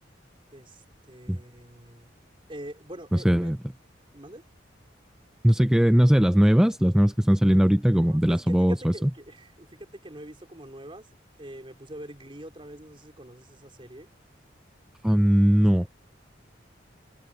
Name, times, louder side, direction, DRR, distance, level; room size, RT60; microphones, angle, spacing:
voice 1, 0.5-2.1 2.5-3.5 4.1-4.5 8.0-14.1, right 1 dB, 30° right, 4.4 m, -44 dB
voice 2, 3.3-3.6 5.4-8.7 15.0-15.9, equal, 5° right, 0.4 m, -19 dB
head